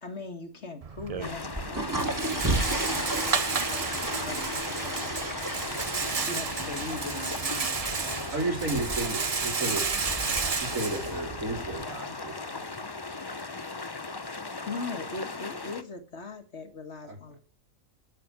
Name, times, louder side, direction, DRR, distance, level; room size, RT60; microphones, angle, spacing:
voice 1, 0.0-5.4 6.3-8.3 14.6-17.4, left 3 dB, 55° left, 7 dB, 1.9 m, -41 dB
Rattle, 0.8-11.9, right 5 dB, 35° right, 0.7 m, -32 dB
sound 1, 1.2-15.8, left 3 dB, 25° left, 0.7 m, -37 dB
sound 2, 1.4-10.5, right 1 dB, 15° right, 1.6 m, -34 dB
voice 2, 8.3-9.9 10.6-12.9 17.0-17.2, right 2 dB, 75° right, 1 dB, 4.2 m, -33 dB
13.0 x 6.8 x 8.1 m, 0.39 s
omnidirectional pair, 1.4 m